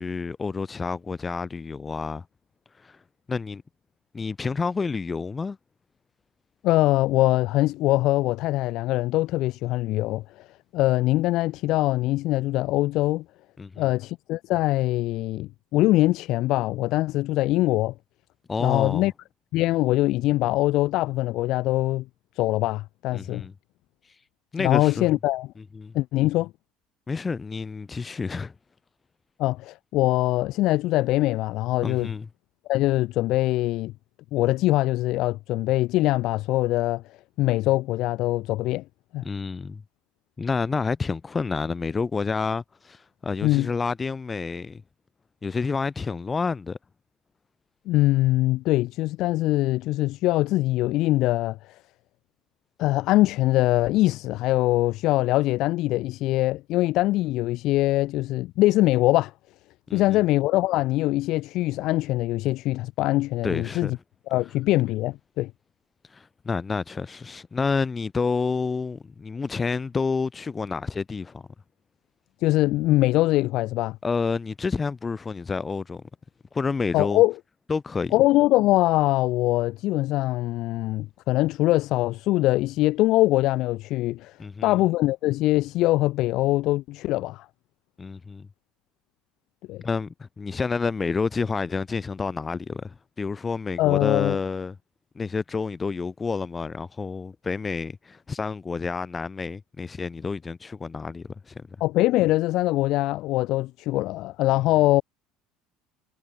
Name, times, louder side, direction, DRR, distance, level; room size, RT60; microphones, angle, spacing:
voice 1, 0.0-2.2 2.7-3.0 3.3-3.6 4.1-5.6 13.6-13.9 18.5-19.1 23.1-23.5 24.0-24.2 24.5-25.1 25.7-25.9 27.1-28.5 31.8-32.3 39.2-39.8 40.4-44.8 45.4-46.8 59.9-60.2 63.4-63.9 66.0-71.4 74.0-76.0 76.5-77.2 77.7-78.1 84.4-84.8 88.0-88.5 89.8-94.7 95.1-101.7, left 4 dB, 20° left, 4.8 m, -29 dB
voice 2, 6.6-10.5 10.7-13.2 13.8-17.9 18.6-19.1 19.5-22.0 22.3-23.5 24.6-25.5 25.9-26.5 29.4-32.1 32.7-33.9 34.3-37.0 37.4-38.8 39.1-39.3 43.4-43.7 47.8-51.8 52.8-59.3 59.9-64.0 64.3-65.5 72.4-74.0 76.9-77.3 78.1-84.4 84.6-87.4 89.7-89.8 93.8-94.4 101.8-105.0, left 17 dB, 60° left, 1.7 m, -23 dB
cardioid pair, 135°, 0 cm